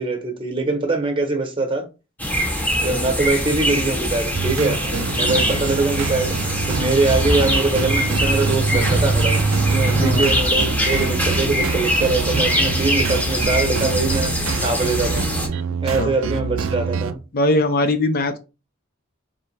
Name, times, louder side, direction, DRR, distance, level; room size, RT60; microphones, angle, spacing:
voice 1, 0.0-1.9 2.8-4.8 5.1-6.4 6.7-9.4 9.7-15.3 15.8-17.2, right 3 dB, 25° right, 1.0 m, -23 dB
sound 1, 2.2-15.5, equal, 10° left, 0.8 m, -23 dB
sound 2, 4.3-17.2, right 5 dB, 70° right, 0.4 m, -25 dB
voice 2, 10.0-10.3 15.9-16.1 17.3-18.4, left 2 dB, 45° left, 0.5 m, -21 dB
4.0 x 3.2 x 3.2 m
head